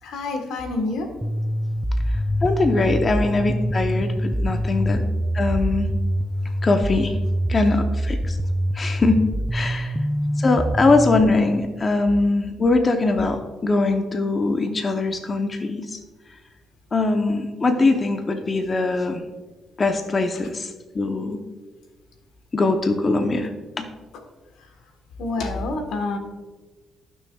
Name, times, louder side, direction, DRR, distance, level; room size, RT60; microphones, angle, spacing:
voice 1, 0.0-1.1 25.2-26.2, left 2 dB, 85° left, 5 dB, 1.3 m, -27 dB
sound 1, 1.2-11.2, equal, ahead, 0.4 m, -25 dB
voice 2, 2.4-5.0 5.3-5.9 6.6-7.1 7.5-8.4 8.8-9.2 9.5-9.9 10.4-15.8 16.9-19.2 19.8-20.7 20.9-21.4 22.5-23.5 23.8-23.9, left 3 dB, 35° left, 5 dB, 0.7 m, -21 dB
14.5 x 6.2 x 2.3 m, 1.3 s
cardioid pair, 90°, 0 cm